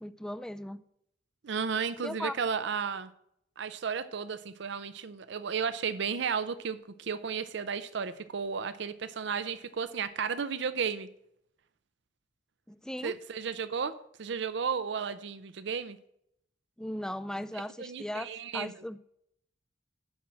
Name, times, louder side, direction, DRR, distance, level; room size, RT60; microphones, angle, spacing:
voice 1, 0.0-0.8 2.0-2.3 12.7-13.2 16.8-19.0, left 1 dB, 5° left, 13 dB, 0.3 m, -37 dB
voice 2, 1.4-3.1 3.6-11.1 13.0-13.9 14.2-16.0 17.8-18.8, right 6 dB, 65° right, 12 dB, 0.6 m, -33 dB
7.3 x 5.8 x 7.4 m, 0.74 s
head